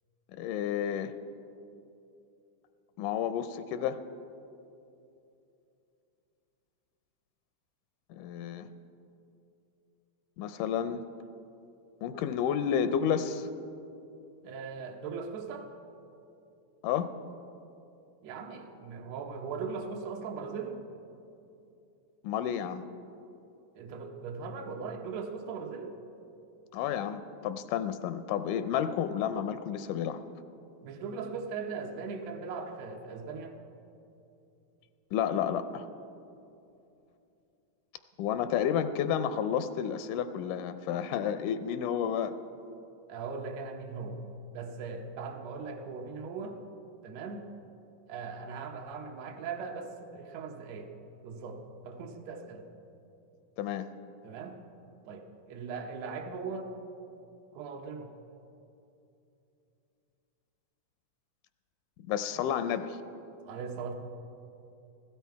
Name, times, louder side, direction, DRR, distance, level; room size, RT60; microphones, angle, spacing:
voice 1, 0.3-1.1 3.0-4.0 8.1-8.7 10.4-11.0 12.0-13.5 16.8-17.1 22.2-22.9 26.7-30.2 35.1-35.9 38.2-42.3 53.6-53.9 62.1-63.0, left 8 dB, 85° left, 11 dB, 2.1 m, -31 dB
voice 2, 14.4-15.7 18.2-20.8 23.8-26.0 30.8-33.6 43.1-44.2 44.5-46.6 47.0-47.5 48.1-50.9 51.2-52.7 54.2-54.6 55.1-56.7 57.5-58.1 63.4-63.9, right 5 dB, 70° right, 3 dB, 1.9 m, -39 dB
16.0 x 12.5 x 4.6 m, 2.8 s
omnidirectional pair, 3.6 m